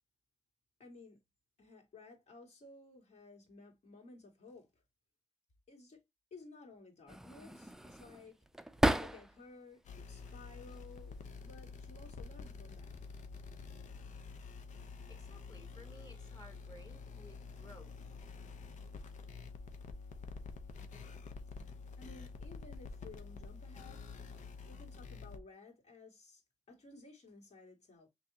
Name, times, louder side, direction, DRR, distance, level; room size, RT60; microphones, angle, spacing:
voice 1, 0.8-1.2 1.6-4.8 5.7-6.0 6.3-8.4 9.0-13.0 22.0-24.0 24.6-26.4 26.7-28.1, left 3 dB, 60° left, 2.4 m, -56 dB
sound 1, 7.1-9.6 10.0-10.8 11.8-12.1 12.4-13.2, right 1 dB, 5° right, 0.4 m, -36 dB
sound 2, 9.8-25.4, left 4 dB, 85° left, 0.8 m, -48 dB
voice 2, 15.1-18.0, left 1 dB, 30° left, 1.9 m, -57 dB
5.8 x 2.8 x 2.9 m
wide cardioid pair, 105°, 12 cm